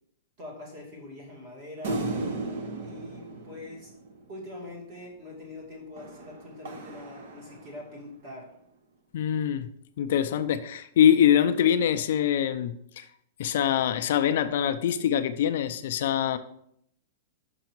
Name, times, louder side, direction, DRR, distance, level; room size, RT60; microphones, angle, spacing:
voice 1, 0.4-2.0 2.8-3.9 4.3-8.5, left 2 dB, 35° right, -1 dB, 2.3 m, -43 dB
sound 1, 1.8-4.5 6.0-8.0, right 2 dB, 50° right, 1.0 m, -36 dB
voice 2, 9.1-9.7 10.0-13.0 13.4-16.4, left 9 dB, 50° left, 9 dB, 0.4 m, -24 dB
6.1 x 5.7 x 4.5 m, 0.71 s
supercardioid pair, 180°, 0 cm